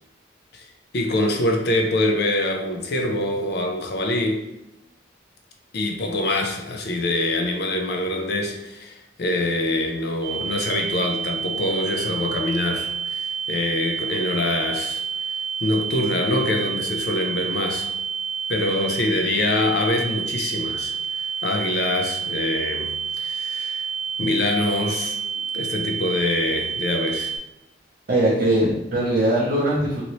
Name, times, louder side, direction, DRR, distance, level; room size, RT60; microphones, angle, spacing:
voice 1, 0.9-4.4 5.7-15.0 15.6-17.9 18.5-23.8 24.2-25.2 25.5-27.3 28.6-28.7, left 1 dB, 60° left, 2 dB, 0.5 m, -25 dB
sound 1, 10.2-27.4, right 6 dB, 5° right, 0.6 m, -29 dB
voice 2, 28.1-30.0, right 1 dB, 50° right, -6 dB, 0.6 m, -20 dB
2.8 x 2.7 x 3.0 m, 0.90 s
head